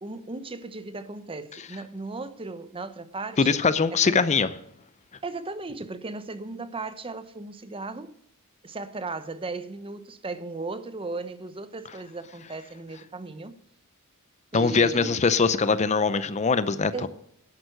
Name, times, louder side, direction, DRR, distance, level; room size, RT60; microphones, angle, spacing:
voice 1, 0.0-3.6 4.0-4.3 5.2-8.1 8.6-13.6 14.5-15.2 16.9-17.1, right 3 dB, 25° right, 0.8 m, -36 dB
voice 2, 3.4-4.5 14.5-17.1, left 4 dB, 30° left, 0.5 m, -22 dB
11.0 x 9.3 x 6.4 m
head